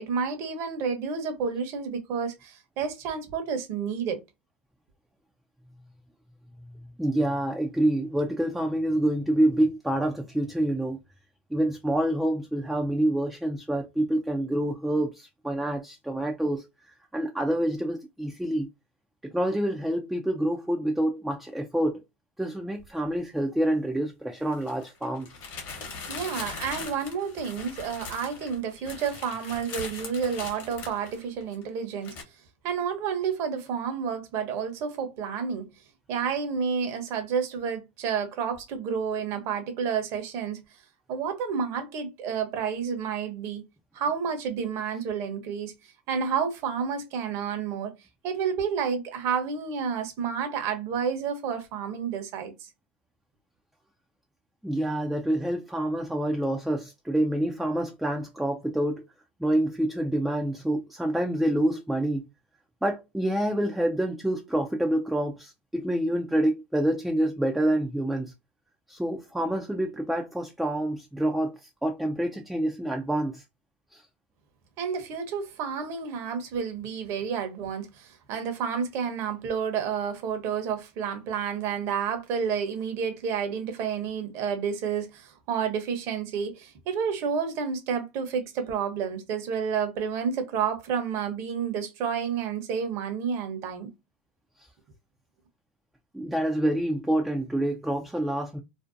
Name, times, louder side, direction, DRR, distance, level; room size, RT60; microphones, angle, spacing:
voice 1, 0.0-4.2 26.1-32.2 32.6-35.7 36.1-40.6 41.1-43.6 43.9-45.7 46.1-47.9 48.2-52.7 74.8-93.9, right 6 dB, 45° right, 0.8 m, -30 dB
voice 2, 7.0-11.0 11.5-16.7 17.1-18.7 19.2-22.0 22.4-25.3 54.6-59.0 59.4-62.3 62.8-68.3 68.9-73.4 73.9-74.0 96.1-98.6, right 1 dB, ahead, 0.3 m, -27 dB
sound 1, 22.8-22.9 24.4-31.6 32.0-32.2, left 4 dB, 50° left, 1.0 m, -40 dB
2.5 x 2.1 x 2.5 m
hypercardioid pair, 115°, 6 cm